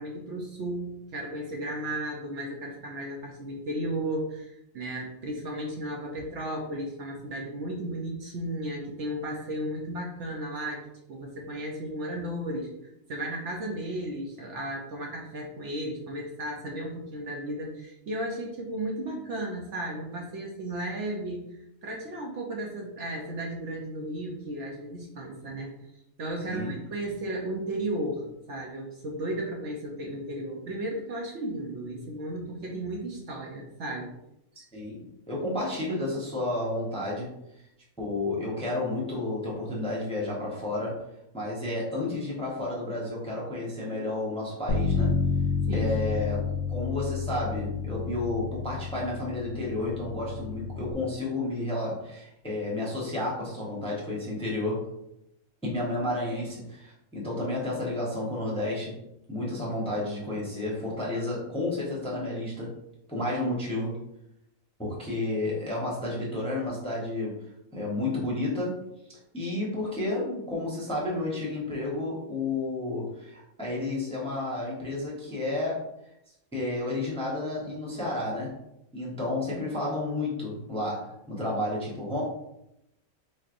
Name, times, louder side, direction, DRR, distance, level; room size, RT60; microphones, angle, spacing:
voice 1, 0.0-10.8 11.1-25.7 26.2-34.1 34.6-34.7 45.6-45.9, right 1 dB, 60° right, -1 dB, 0.9 m, -34 dB
voice 2, 26.4-26.8 34.7-37.3 38.0-41.0 41.3-45.1 45.7-46.4 46.7-54.9 55.6-59.0 59.3-62.7 63.1-64.0 64.8-67.3 67.7-68.8 69.3-75.8 76.5-78.6 78.9-82.2, left 2 dB, 5° left, -5 dB, 0.8 m, -31 dB
Bass guitar, 44.7-50.9, left 5 dB, 60° left, 0.8 m, -30 dB
4.1 x 3.2 x 2.5 m, 0.83 s
omnidirectional pair, 1.5 m